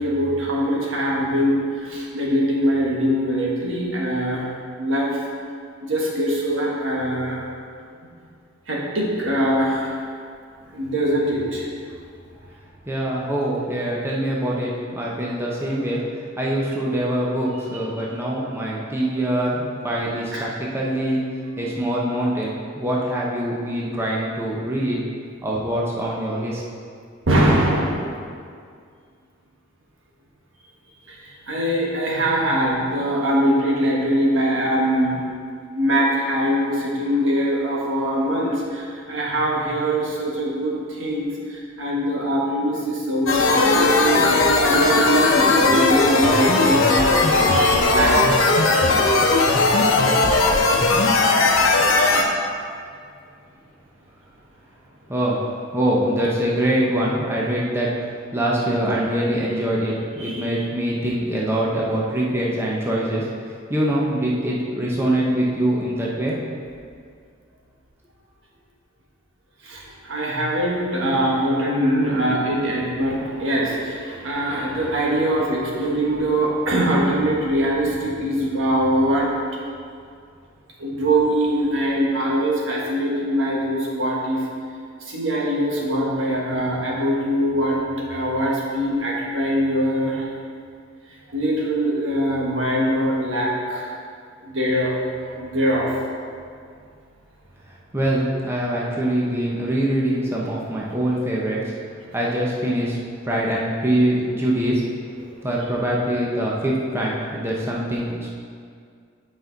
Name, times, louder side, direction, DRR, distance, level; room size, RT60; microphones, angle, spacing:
voice 1, 0.0-4.5 4.8-5.2 5.8-7.4 8.7-10.0 10.7-11.7 13.3-13.4 20.3-20.4 27.3-28.1 31.1-35.2 35.7-48.3 60.2-60.4 69.6-79.3 80.8-84.4 85.1-87.8 88.1-90.3 91.3-93.9 94.4-95.9, equal, 75° right, -3 dB, 1.5 m, -22 dB
voice 2, 12.9-16.0 16.4-25.0 25.4-26.6 55.1-55.5 55.7-57.9 58.3-63.3 63.7-66.4 97.9-101.7 102.1-103.0 103.2-104.8 105.4-108.3, right 1 dB, 15° right, -4 dB, 0.8 m, -23 dB
sound 1, 43.3-52.2, left 3 dB, 90° left, 0.8 m, -17 dB
8.8 x 5.2 x 4.0 m, 2.2 s
head